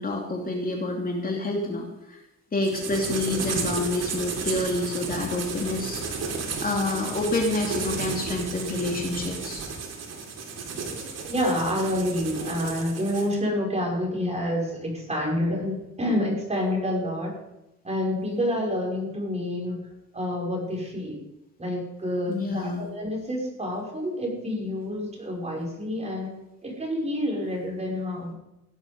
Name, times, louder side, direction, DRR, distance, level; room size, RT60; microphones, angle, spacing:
voice 1, 0.0-2.2 2.5-6.2 6.6-9.7 22.3-22.8, left 2 dB, 30° left, 0 dB, 2.8 m, -28 dB
sound 1, 2.6-13.3, right 4 dB, 55° right, 3.7 m, -33 dB
voice 2, 10.7-17.3 17.8-21.2 21.6-26.3 26.6-28.3, left 1 dB, 20° right, -1 dB, 5.8 m, -28 dB
17.0 x 10.5 x 5.4 m, 0.90 s
cardioid pair, 100°, 30 cm